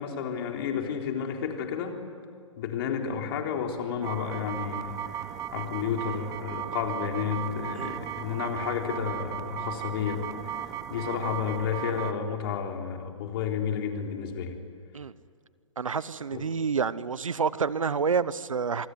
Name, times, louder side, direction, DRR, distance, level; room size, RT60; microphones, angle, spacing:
voice 1, 0.0-2.0 2.6-10.6 10.9-14.6 16.3-16.4, left 7 dB, 45° left, 3 dB, 3.8 m, -31 dB
sound 1, 4.0-12.1, right 10 dB, 20° right, 1.2 m, -36 dB
voice 2, 15.8-18.9, right 5 dB, 90° right, 18 dB, 1.0 m, -28 dB
27.0 x 21.0 x 9.6 m, 2.2 s
hypercardioid pair, 130°, 17 cm